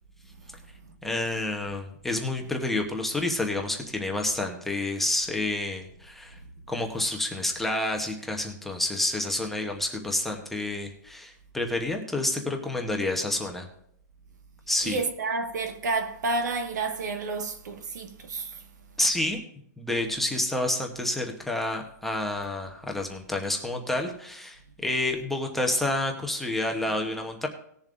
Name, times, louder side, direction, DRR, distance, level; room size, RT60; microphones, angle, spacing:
voice 1, 1.0-6.4 6.7-13.7 14.7-15.0 19.0-19.4 19.8-27.5, left 2 dB, ahead, 0.9 m, -29 dB
voice 2, 14.8-18.5, right 3 dB, 75° right, 1.6 m, -30 dB
19.5 x 7.2 x 2.5 m
hypercardioid pair, 165°, 10 cm